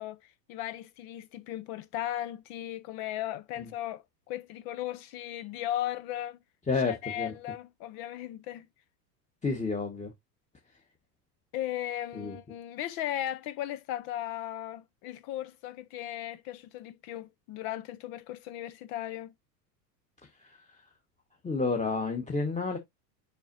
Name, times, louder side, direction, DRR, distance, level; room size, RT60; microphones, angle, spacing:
voice 1, 0.0-6.4 6.8-8.7 11.5-19.3, left 12 dB, 50° left, 0.8 m, -37 dB
voice 2, 6.7-7.3 9.4-10.1 12.1-12.4 20.4-20.6 21.4-22.8, left 4 dB, 15° left, 1.5 m, -30 dB
7.0 x 5.8 x 2.6 m
hypercardioid pair, 90°, 49 cm